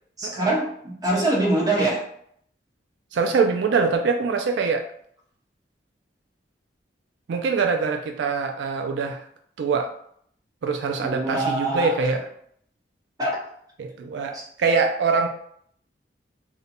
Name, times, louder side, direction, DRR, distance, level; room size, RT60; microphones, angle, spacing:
voice 1, 0.2-2.1 11.0-11.9 13.2-13.4 14.3-14.4, right 2 dB, 20° right, -3 dB, 0.8 m, -24 dB
voice 2, 3.1-4.8 7.3-9.2 9.6-9.9 10.6-12.2 13.8-15.3, right 4 dB, 80° right, 4 dB, 0.3 m, -23 dB
2.6 x 2.2 x 4.1 m, 0.66 s
head